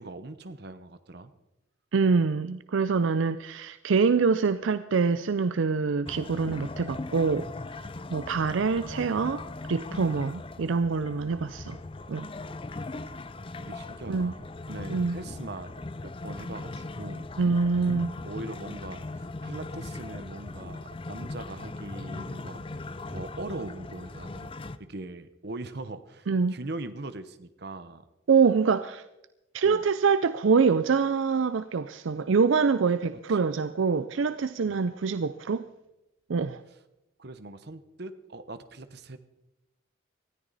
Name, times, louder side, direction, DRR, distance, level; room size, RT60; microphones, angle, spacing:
voice 1, 0.0-1.3 13.1-15.7 16.0-17.3 18.2-24.5 24.8-28.1 29.6-29.9 33.1-33.5 34.6-34.9 37.2-39.2, right 2 dB, 55° right, 0.9 m, -41 dB
voice 2, 1.9-7.5 8.1-9.4 9.7-11.8 12.1-12.3 14.1-14.3 14.9-15.2 17.4-18.1 26.3-26.6 28.3-29.0 29.5-35.7 36.3-36.6, right 5 dB, 75° right, 0.5 m, -25 dB
sound 1, 6.1-24.8, left 2 dB, 25° left, 0.5 m, -39 dB
19.0 x 13.5 x 4.1 m
head